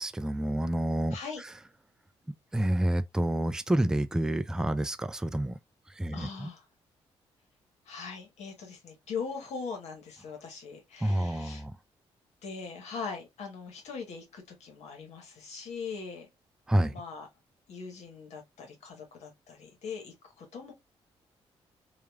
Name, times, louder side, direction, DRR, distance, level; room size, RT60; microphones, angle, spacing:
voice 1, 0.0-1.5 2.5-5.6 6.0-6.5 11.0-11.7 16.7-16.9, right 1 dB, 5° right, 0.3 m, -28 dB
voice 2, 1.1-1.4 6.1-6.6 7.9-11.6 12.4-16.3 16.9-17.3 17.7-20.7, left 5 dB, 70° left, 1.2 m, -41 dB
3.0 x 2.4 x 2.3 m
supercardioid pair, 60°, 12 cm